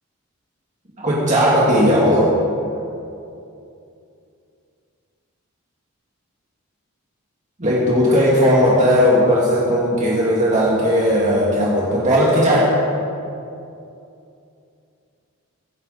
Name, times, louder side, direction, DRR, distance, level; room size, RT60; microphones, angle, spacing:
voice 1, 1.0-2.3 7.6-12.7, equal, 35° right, -6 dB, 2.1 m, -16 dB
22.0 x 10.5 x 4.2 m, 2.6 s
head